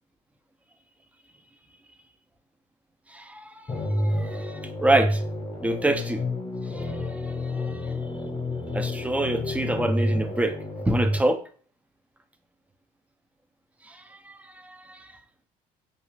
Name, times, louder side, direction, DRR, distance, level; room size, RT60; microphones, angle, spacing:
voice 1, 3.1-5.2 5.6-6.2 6.7-7.9 8.7-10.6 10.9-11.4 13.8-15.1, right 1 dB, 10° right, 0.4 m, -27 dB
sound 1, 3.7-11.2, left 1 dB, 25° left, 0.9 m, -29 dB
2.4 x 2.3 x 3.1 m
supercardioid pair, 90°, 17 cm